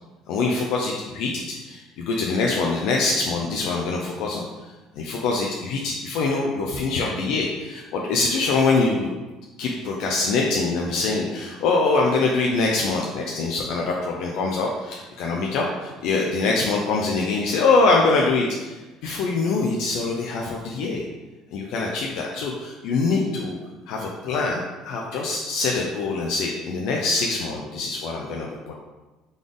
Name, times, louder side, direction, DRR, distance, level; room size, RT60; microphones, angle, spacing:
voice 1, 0.3-9.1 9.6-21.1 21.5-23.6 23.9-28.7, left 3 dB, 70° left, -1 dB, 0.5 m, -24 dB
3.9 x 3.4 x 3.8 m, 1.2 s
supercardioid pair, 85°, 0 cm